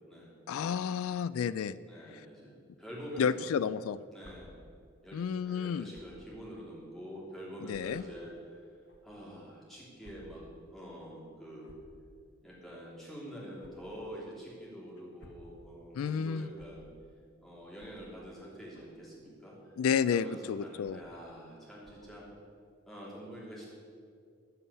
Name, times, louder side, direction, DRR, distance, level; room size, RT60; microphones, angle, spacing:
voice 1, 0.5-1.8 3.2-4.0 5.1-5.9 7.7-8.0 16.0-16.5 19.8-21.0, left 7 dB, 80° left, 17 dB, 0.3 m, -31 dB
voice 2, 1.8-3.7 4.1-4.5 5.0-8.7 9.0-11.7 12.4-16.9 17.4-19.7 20.1-22.3 22.9-23.7, equal, ahead, -6 dB, 3.2 m, -46 dB
sound 1, 4.2-4.3 5.9-6.2 6.9-7.0 7.7-7.8 8.9-9.0 10.0-10.2 10.5-10.6 11.6-11.9 13.6-13.7 15.0-15.4 16.5-16.7 17.7-17.9 18.7-19.0 19.8-20.1 20.8-21.1 21.8-22.1, equal, 55° left, 1.5 m, -57 dB
14.0 x 5.6 x 9.6 m, 2.2 s
head